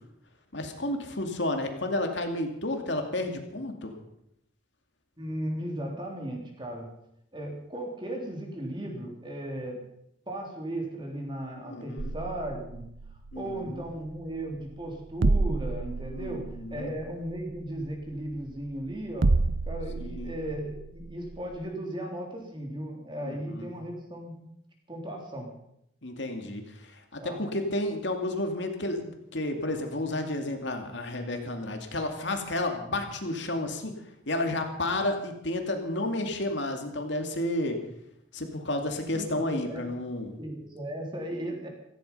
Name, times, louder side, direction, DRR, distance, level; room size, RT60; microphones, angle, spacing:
voice 1, 0.5-3.9 11.6-12.1 13.3-13.8 16.1-16.9 20.0-20.3 23.2-23.7 26.0-33.9 34.3-37.8 38.3-40.3, left 1 dB, 65° left, 4 dB, 2.4 m, -31 dB
voice 2, 5.2-6.9 7.3-9.8 10.3-12.9 13.4-19.3 19.7-24.4 24.9-25.5 27.2-27.4 39.1-39.8 40.4-41.7, right 1 dB, 25° right, 1 dB, 3.5 m, -36 dB
sound 1, 12.0-21.6, right 2 dB, 75° right, 0.7 m, -31 dB
16.5 x 15.0 x 5.5 m, 0.76 s
head